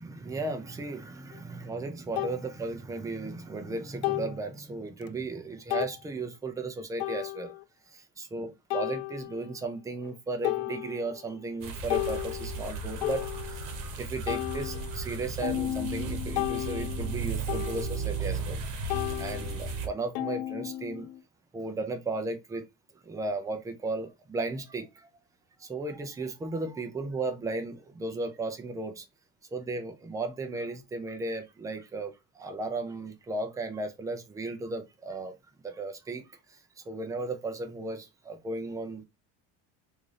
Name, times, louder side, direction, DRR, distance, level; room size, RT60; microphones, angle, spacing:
voice 1, 0.0-7.5 7.8-13.6 14.0-18.6 19.2-21.1 21.5-22.6 22.9-25.1 25.6-29.1 29.5-35.3 35.6-39.0, right 3 dB, 10° right, 0.4 m, -35 dB
sound 1, 1.3-1.4 2.2-2.4 4.0-4.4 5.0-5.1 5.7-6.0 7.0-7.6 8.7-9.5 10.0-10.1 10.4-11.3 11.6-13.8 14.3-18.6 18.9-21.2, left 17 dB, 85° left, 0.5 m, -34 dB
sound 2, 11.6-19.9, right 4 dB, 55° right, 1.1 m, -35 dB
3.6 x 2.6 x 3.2 m
cardioid pair, 150°, 38 cm